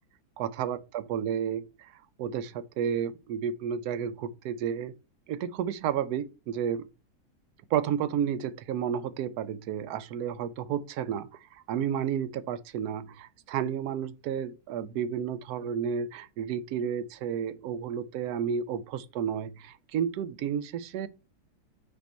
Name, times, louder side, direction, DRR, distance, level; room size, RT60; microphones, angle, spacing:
voice 1, 0.4-4.9 5.3-6.9 7.7-21.1, right 8 dB, 75° right, 1.1 m, -32 dB
5.5 x 4.4 x 4.3 m
omnidirectional pair, 1.7 m